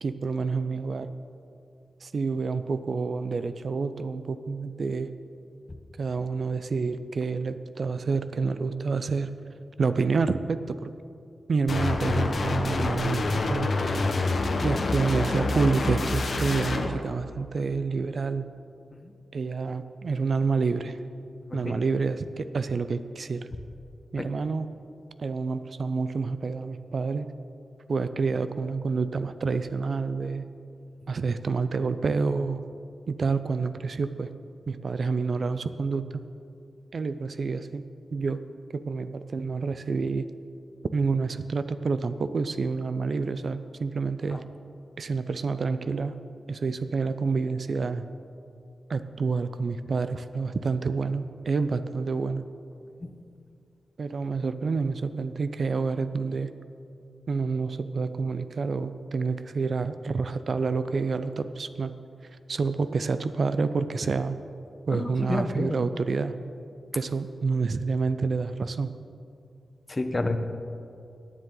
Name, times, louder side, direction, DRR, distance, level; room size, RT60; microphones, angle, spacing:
voice 1, 0.0-1.1 2.0-5.1 6.0-9.3 9.8-10.9 11.5-13.7 14.6-18.5 19.3-21.0 21.5-23.5 24.1-24.7 25.2-27.3 27.9-30.5 31.1-32.6 33.1-34.3 34.7-36.2 36.9-37.8 38.1-38.4 38.7-40.3 40.9-44.4 45.0-46.1 46.5-48.1 48.9-52.5 54.0-56.5 57.3-61.9 62.5-64.4 64.9-66.3 66.9-68.9, right 4 dB, 55° right, 11 dB, 0.4 m, -28 dB
sound 1, 11.7-16.9, left 3 dB, 55° left, 1.1 m, -27 dB
voice 2, 21.5-21.8 24.2-24.3 44.3-44.4 53.0-53.1 64.9-65.8 69.9-70.4, left 2 dB, 25° left, 7 dB, 0.9 m, -30 dB
17.5 x 9.4 x 3.9 m, 2.5 s
wide cardioid pair, 105°, 0 cm